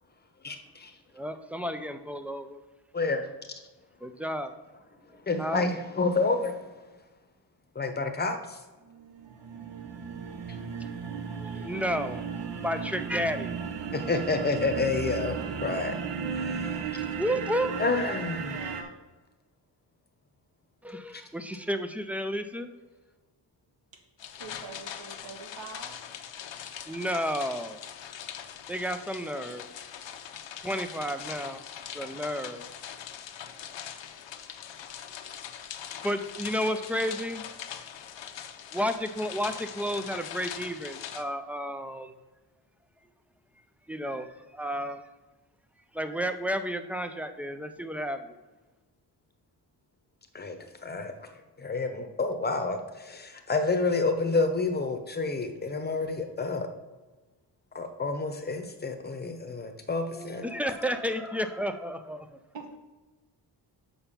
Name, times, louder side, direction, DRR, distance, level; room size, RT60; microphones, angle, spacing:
voice 1, 0.4-0.9 2.9-3.2 5.3-6.8 7.7-8.6 13.9-16.0 16.4-16.9 17.8-18.5 50.3-51.1 51.6-56.7 57.7-60.4, left 3 dB, 25° left, 6 dB, 0.8 m, -29 dB
voice 2, 1.1-2.6 4.0-4.5 5.1-5.7 10.8-13.5 17.0-17.7 20.8-22.7 26.9-27.8 28.7-29.7 30.3-32.7 33.8-33.9 36.0-37.7 38.7-42.2 43.9-45.1 45.9-48.4 60.1-62.4, equal, 5° right, 9 dB, 0.3 m, -32 dB
sound 1, 8.9-18.8, right 6 dB, 70° right, 1.0 m, -35 dB
voice 3, 17.6-18.9 24.4-26.0 62.5-62.7, right 4 dB, 90° right, 3 dB, 1.6 m, -43 dB
Rain on the roof, 24.2-41.2, left 9 dB, 80° left, 0.8 m, -42 dB
7.0 x 5.7 x 5.6 m, 1.2 s
wide cardioid pair, 170°, 43 cm